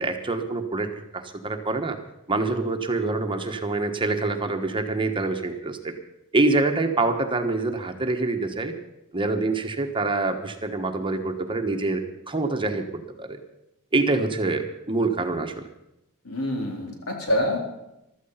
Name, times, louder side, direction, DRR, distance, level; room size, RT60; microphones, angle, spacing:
voice 1, 0.0-2.0 2.3-5.9 6.3-8.7 9.1-12.9 13.2-13.4 13.9-15.6, right 3 dB, 25° right, 5 dB, 1.3 m, -25 dB
voice 2, 16.2-17.6, left 1 dB, 75° left, 1 dB, 4.0 m, -26 dB
15.5 x 12.5 x 5.7 m, 0.88 s
head